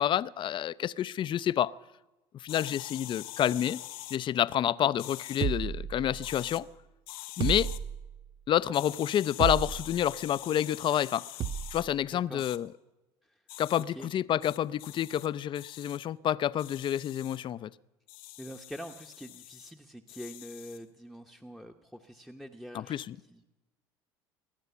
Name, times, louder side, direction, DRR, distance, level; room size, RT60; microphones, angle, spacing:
voice 1, 0.0-1.7 2.3-3.8 4.1-6.7 7.4-7.7 8.5-11.2 11.7-12.7 13.6-17.7 22.7-23.2, left 10 dB, 40° left, 0.5 m, -28 dB
sound 1, 2.5-4.2 5.0-5.5 6.1-6.6 7.1-7.8 8.7-11.8 12.4-12.6 13.5-13.8 14.4-15.3 15.5-16.0 16.6-17.4 18.1-19.7 20.1-20.8, left 16 dB, 80° left, 0.9 m, -45 dB
sound 2, 5.4-6.5 7.4-8.3 9.4-10.1 11.4-11.9, right 8 dB, 40° right, 0.6 m, -33 dB
voice 2, 12.0-12.4 13.2-13.4 13.9-14.1 18.4-23.0 23.3-23.4, equal, ahead, 1.0 m, -45 dB
22.0 x 9.5 x 7.0 m
hypercardioid pair, 75°, 12 cm